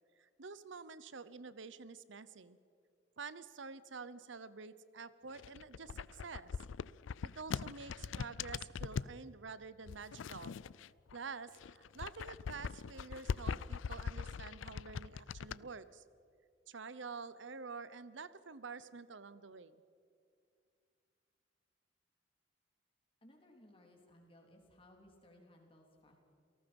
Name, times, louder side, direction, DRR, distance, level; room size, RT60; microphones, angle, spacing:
voice 1, 0.2-2.6 3.2-6.6 7.4-10.6 11.1-16.0 16.7-19.8, right 4 dB, 80° right, 15 dB, 0.8 m, -48 dB
sound 1, 5.3-9.2 9.9-11.2 11.5-15.6, left 6 dB, 85° left, 0.4 m, -41 dB
voice 2, 23.2-26.2, left 1 dB, 30° left, 1 dB, 3.6 m, -62 dB
28.5 x 18.5 x 5.4 m, 2.4 s
head